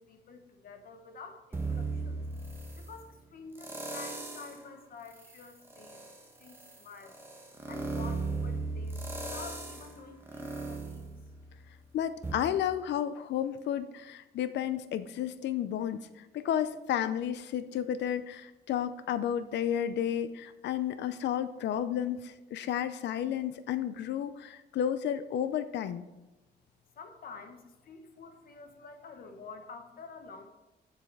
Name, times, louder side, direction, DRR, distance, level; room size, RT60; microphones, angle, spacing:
voice 1, 0.0-2.2 2.8-6.0 6.4-7.2 7.7-11.1 26.9-30.5, left 4 dB, 55° left, 6 dB, 1.1 m, -49 dB
sound 1, 1.5-2.9 3.5-4.6 5.1-11.8 12.2-12.3, right 3 dB, 10° right, 1.4 m, -37 dB
voice 2, 11.9-26.0, left 10 dB, 80° left, 13 dB, 0.5 m, -32 dB
7.4 x 7.0 x 4.6 m, 1.1 s
wide cardioid pair, 165°, 18 cm